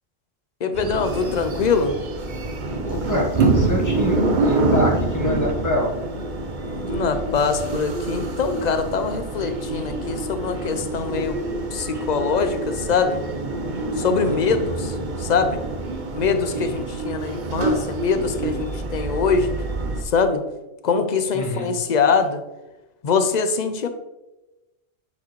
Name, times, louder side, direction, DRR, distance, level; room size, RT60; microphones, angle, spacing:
voice 1, 0.6-2.0 6.7-11.4 11.7-13.2 14.0-15.6 16.1-19.6 20.0-20.4 20.8-22.4 23.0-23.9, left 5 dB, 50° left, 9 dB, 0.5 m, -23 dB
sound 1, 0.7-20.0, right 2 dB, 45° right, 0.8 m, -26 dB
voice 2, 2.8-5.9 14.3-14.6 16.5-16.8 21.3-21.7, left 1 dB, 15° left, -2 dB, 1.2 m, -26 dB
8.3 x 4.8 x 3.1 m, 1.0 s
omnidirectional pair, 1.3 m